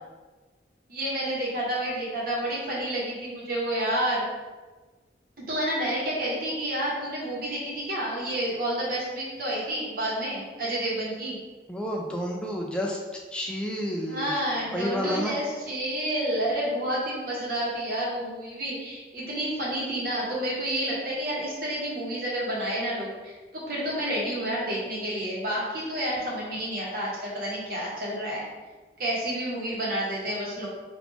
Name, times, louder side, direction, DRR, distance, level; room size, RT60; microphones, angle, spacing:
voice 1, 0.9-4.2 5.5-11.4 14.1-28.4 29.0-30.7, right 1 dB, 55° right, -6 dB, 1.1 m, -29 dB
voice 2, 11.7-13.0 13.3-14.4 14.7-15.4, equal, 5° left, -1 dB, 0.3 m, -30 dB
3.2 x 2.5 x 3.4 m, 1.3 s
head